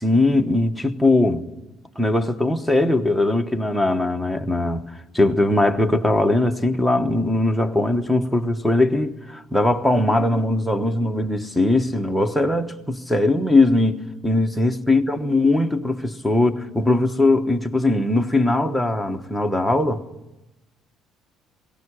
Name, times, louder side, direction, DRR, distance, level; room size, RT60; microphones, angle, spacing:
voice 1, 0.0-1.4 2.0-4.8 5.1-20.0, left 2 dB, ahead, 1.1 m, -20 dB
21.5 x 18.0 x 9.9 m
cardioid pair, 160°, 0 cm